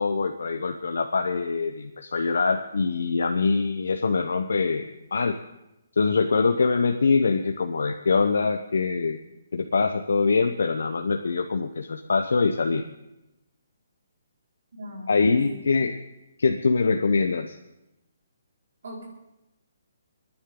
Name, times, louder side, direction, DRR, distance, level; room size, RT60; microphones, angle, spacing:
voice 1, 0.0-5.4 6.0-9.2 9.5-12.8 15.1-16.0 16.4-17.6, left 4 dB, 80° left, 5 dB, 0.9 m, -24 dB
voice 2, 14.7-15.6 18.8-19.1, equal, 60° right, -4 dB, 5.0 m, -40 dB
30.0 x 10.0 x 3.8 m, 0.93 s
hypercardioid pair, 175°, 0 cm